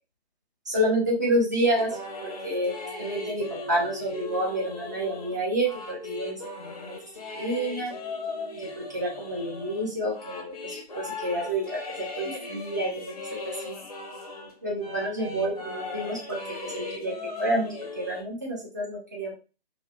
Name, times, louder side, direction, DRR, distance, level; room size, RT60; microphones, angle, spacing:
voice 1, 0.7-1.9 2.2-2.7 3.0-7.0 7.4-7.9 8.8-11.8 12.2-13.1 13.6-13.8 14.6-19.3, right 1 dB, 20° right, -4 dB, 0.4 m, -29 dB
sound 1, 1.8-14.5 14.8-18.2, left 3 dB, 35° left, 0.5 m, -38 dB
2.5 x 2.2 x 2.3 m, 0.33 s
figure-of-eight pair, 145°, 32 cm